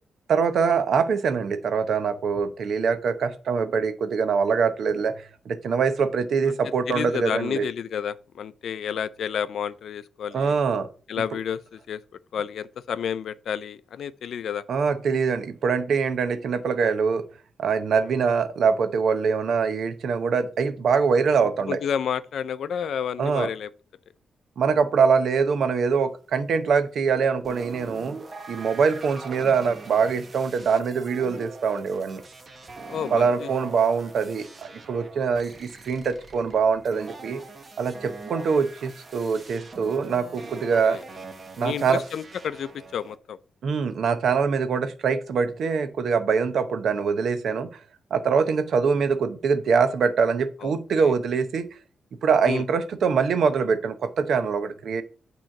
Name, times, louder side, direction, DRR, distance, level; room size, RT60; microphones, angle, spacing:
voice 1, 0.3-7.7 10.3-10.9 14.7-17.3 17.6-21.8 23.2-23.5 24.6-28.2 28.5-32.2 33.1-37.4 37.8-41.0 41.6-42.0 43.6-47.7 48.1-51.7 52.2-55.0, right 5 dB, 65° right, 0.7 m, -23 dB
voice 2, 6.9-10.6 11.1-12.0 12.3-14.6 21.7-23.7 32.9-33.5 40.6-41.0 41.6-43.4 50.6-51.1 52.5-52.6, left 8 dB, 70° left, 0.4 m, -31 dB
sound 1, 27.4-43.2, right 3 dB, 30° right, 0.9 m, -42 dB
8.9 x 3.1 x 5.8 m
wide cardioid pair, 145°, 0 cm